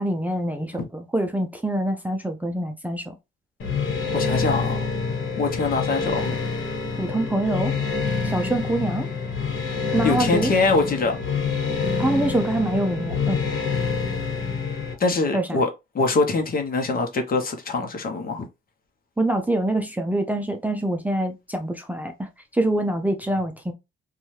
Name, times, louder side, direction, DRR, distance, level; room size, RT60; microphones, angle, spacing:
voice 1, 0.0-3.2 7.0-7.7 8.2-9.1 9.9-10.5 12.0-13.4 15.3-15.6 19.2-23.7, right 1 dB, 10° right, 0.5 m, -25 dB
sound 1, 3.6-14.9, left 5 dB, 75° left, 1.1 m, -27 dB
voice 2, 4.1-4.8 5.4-6.4 10.0-11.2 15.0-15.7 15.9-18.4, left 3 dB, 45° left, 0.9 m, -23 dB
2.6 x 2.3 x 3.1 m
cardioid pair, 90°, 20 cm